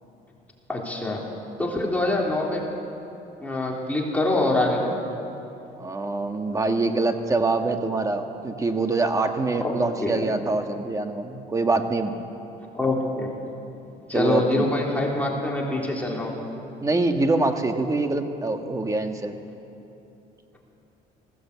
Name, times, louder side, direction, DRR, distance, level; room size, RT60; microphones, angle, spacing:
voice 1, 0.7-1.2 1.6-2.6 3.4-5.0 9.6-10.2 12.7-13.3 14.1-16.4, left 2 dB, 10° left, -3 dB, 3.4 m, -25 dB
voice 2, 5.8-12.1 14.1-14.7 16.8-19.4, right 3 dB, 20° right, 6 dB, 1.5 m, -25 dB
19.5 x 16.0 x 8.3 m, 2.9 s
cardioid pair, 110°, 17 cm